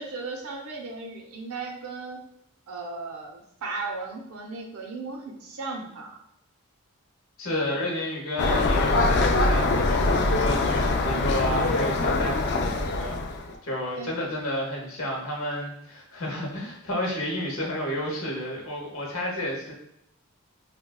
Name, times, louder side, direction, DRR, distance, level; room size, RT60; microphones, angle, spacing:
voice 1, 0.0-2.2 2.7-6.2 13.9-14.1, right 3 dB, 85° right, 2 dB, 0.6 m, -36 dB
voice 2, 7.4-13.2 13.6-19.7, left 1 dB, 75° left, -1 dB, 0.9 m, -31 dB
sound 1, 8.4-13.5, left 2 dB, 50° left, 0.3 m, -23 dB
5.0 x 2.2 x 2.3 m, 0.77 s
head